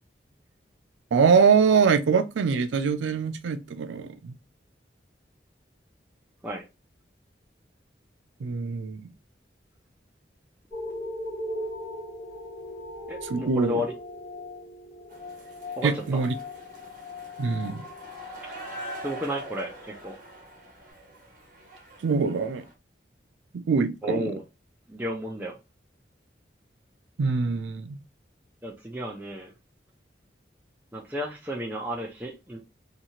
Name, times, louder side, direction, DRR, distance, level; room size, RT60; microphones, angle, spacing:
voice 1, 1.1-4.3 8.4-9.1 13.2-13.7 15.8-16.3 17.4-17.8 22.0-22.7 23.5-24.3 27.2-28.0, right 5 dB, 90° right, 0.4 m, -23 dB
sound 1, 10.7-19.6 20.2-20.3, left 1 dB, 10° left, 1.2 m, -39 dB
voice 2, 13.1-13.9 15.8-16.2 18.5-18.6 19.0-20.2 24.0-24.4 24.9-25.6 28.6-29.5 30.9-32.6, equal, 10° right, 0.5 m, -33 dB
sound 2, 15.1-22.7, right 1 dB, 50° right, 1.1 m, -44 dB
2.8 x 2.3 x 2.8 m
head